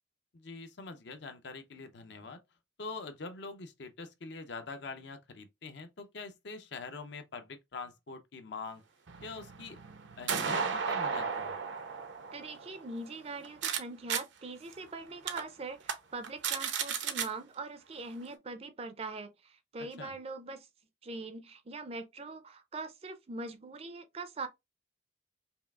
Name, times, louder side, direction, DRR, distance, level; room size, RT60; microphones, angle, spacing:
voice 1, 0.3-2.4 2.8-8.8 9.2-9.8 10.2-11.6 19.8-20.1, left 4 dB, 65° left, 0.7 m, -44 dB
sound 1, 9.1-13.8 14.1-14.2 14.7-14.8 15.3-15.4 15.8-15.9 16.2-17.3, right 6 dB, 75° right, 0.7 m, -34 dB
voice 2, 12.3-20.7 21.0-24.5, right 3 dB, 30° right, 0.4 m, -42 dB
5.5 x 2.4 x 2.3 m
head